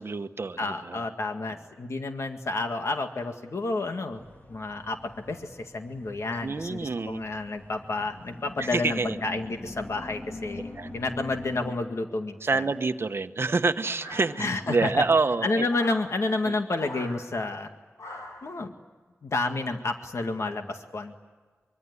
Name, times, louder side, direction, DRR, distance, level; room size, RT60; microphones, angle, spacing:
voice 1, 0.0-1.0 6.4-7.2 8.6-9.2 10.7-10.9 12.4-15.7 16.5-16.6, right 3 dB, 55° right, 9 dB, 1.0 m, -27 dB
voice 2, 0.6-4.2 4.5-12.6 14.4-14.9 15.4-17.7 18.4-18.7 19.2-21.1, left 2 dB, 70° left, 5 dB, 2.0 m, -30 dB
sound 1, 4.1-11.7, left 2 dB, 40° left, 3.2 m, -43 dB
sound 2, 14.0-14.7 15.7-16.1 16.7-17.2 18.0-18.5, left 1 dB, 90° left, 7.5 m, -41 dB
25.0 x 23.5 x 9.8 m, 1.4 s
wide cardioid pair, 90°, 5 cm